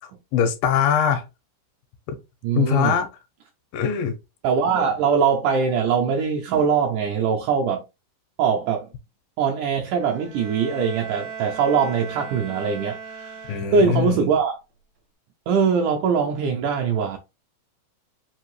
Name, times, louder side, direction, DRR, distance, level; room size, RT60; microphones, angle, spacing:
voice 1, 0.3-1.2 2.1-2.2 2.6-3.1 3.7-4.2 13.5-14.3, left 8 dB, 85° left, 2.4 m, -22 dB
voice 2, 2.4-3.0 4.4-7.8 8.4-8.9 9.4-14.6 15.5-17.2, right 6 dB, 85° right, 1.8 m, -22 dB
Bowed string instrument, 10.0-14.1, right 6 dB, 65° right, 1.1 m, -37 dB
5.5 x 2.6 x 3.1 m
omnidirectional pair, 4.1 m